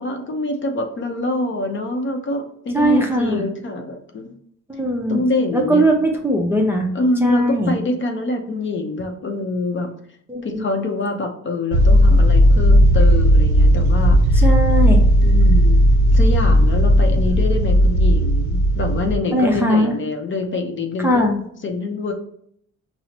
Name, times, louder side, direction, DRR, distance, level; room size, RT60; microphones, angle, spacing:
voice 1, 0.0-4.3 5.1-5.8 6.9-9.9 10.4-14.5 15.2-15.8 16.1-21.3 21.6-22.1, left 2 dB, 35° left, 4 dB, 0.6 m, -25 dB
voice 2, 2.7-3.4 4.7-5.2 5.5-6.9 7.2-7.7 10.3-10.6 14.3-15.0 19.3-19.9 21.0-21.4, equal, 5° right, 0 dB, 0.5 m, -19 dB
sound 1, 11.7-19.2, equal, 65° right, 0.6 m, -14 dB
5.6 x 2.0 x 2.8 m, 0.67 s
cardioid pair, 110°, 32 cm